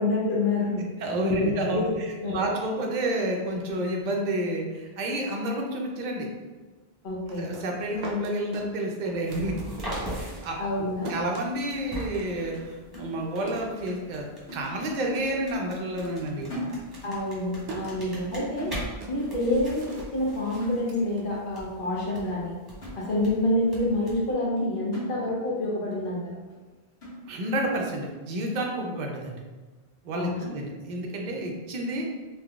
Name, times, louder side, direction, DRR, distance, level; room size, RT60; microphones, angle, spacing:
voice 1, 0.0-0.9 1.2-2.4 7.0-7.5 10.6-11.1 17.0-18.7 19.1-22.5 22.9-26.4 30.1-30.5, left 1 dB, 55° left, -5 dB, 1.0 m, -27 dB
voice 2, 1.0-6.3 7.4-10.6 11.1-14.3 14.5-16.6 27.3-29.4 30.0-32.1, right 1 dB, 55° right, 0 dB, 0.6 m, -30 dB
sound 1, 7.1-10.0 10.3-14.4 14.7-15.4 15.6-21.9, right 3 dB, 80° right, 0.9 m, -44 dB
sound 2, 9.3-24.3, right 1 dB, 25° right, 1.0 m, -41 dB
sound 3, 12.4-13.7 14.0-14.2 14.5-15.2 15.5-15.7 16.0-17.3 17.6-17.8 18.1-18.3 18.6-19.3 19.6-19.8 20.1-20.3 20.6-21.2 21.7-21.8 22.3-22.4 22.8-23.5 23.9-24.0 24.4-24.6 24.9-25.7 26.0-26.1 26.5-26.6 27.0-27.6 28.1-28.2 28.5-28.7, equal, 85° left, 1.4 m, -41 dB
3.7 x 2.8 x 2.3 m, 1.3 s
omnidirectional pair, 1.1 m